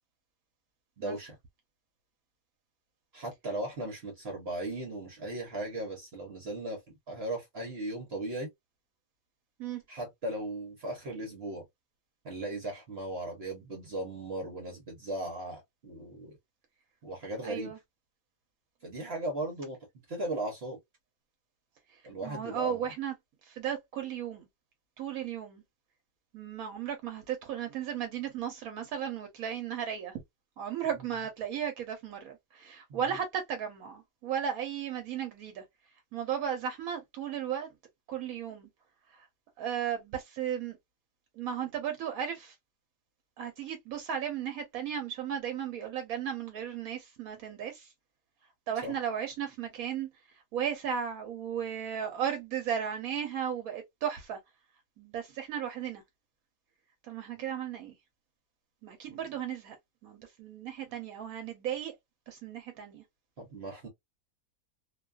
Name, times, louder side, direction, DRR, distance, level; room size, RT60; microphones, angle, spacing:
voice 1, 1.0-1.4 3.1-6.8 7.1-8.5 9.9-11.7 12.2-16.4 17.0-17.7 18.8-19.8 20.1-20.8 22.0-22.9 32.9-33.2 48.8-48.9 59.1-59.2 63.4-63.9, right 1 dB, 50° right, 0.9 m, -37 dB
voice 2, 17.4-17.8 21.9-23.1 23.4-24.5 25.0-25.6 26.3-30.2 30.6-35.6 36.1-37.7 38.1-38.7 39.1-39.3 39.6-40.8 41.4-42.5 43.4-47.9 48.7-54.4 55.0-56.0 57.0-57.9 58.8-59.8 60.0-61.9 62.3-63.0, right 8 dB, 75° right, 1.0 m, -35 dB
2.6 x 2.2 x 2.3 m
omnidirectional pair, 1.6 m